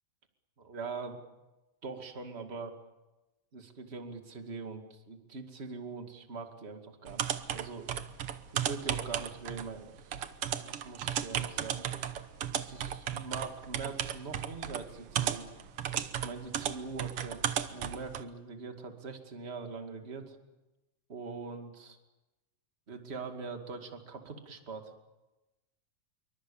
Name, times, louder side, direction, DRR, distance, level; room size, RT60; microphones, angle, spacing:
voice 1, 0.6-1.2 1.8-2.7 3.5-7.9 8.5-11.9 12.5-15.5 16.2-20.4 21.1-22.0 22.9-24.9, right 4 dB, 20° right, 5 dB, 1.9 m, -43 dB
sound 1, 7.1-18.2, right 10 dB, 70° right, 1.3 m, -35 dB
27.0 x 24.0 x 7.2 m, 1.0 s
omnidirectional pair, 4.0 m